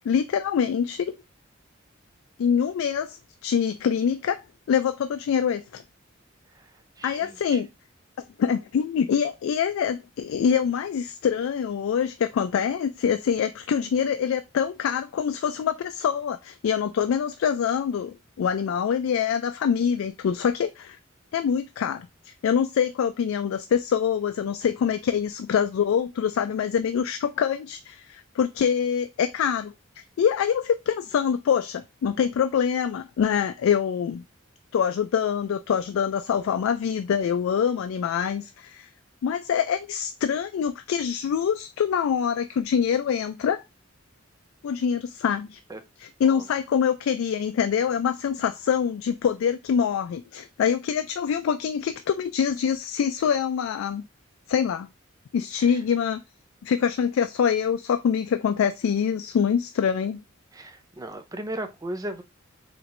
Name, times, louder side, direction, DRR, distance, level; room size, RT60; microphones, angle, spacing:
voice 1, 0.0-1.2 2.4-4.4 4.7-5.8 7.0-7.7 8.4-21.0 21.3-34.2 34.7-38.9 39.2-43.6 44.6-45.6 46.0-54.1 54.5-54.9 55.3-56.2 56.6-60.2, left 7 dB, 80° left, 0.3 m, -25 dB
voice 2, 7.0-7.6 45.7-45.8 46.3-46.4 60.5-62.2, right 1 dB, 20° right, 0.5 m, -36 dB
4.4 x 3.0 x 2.5 m
head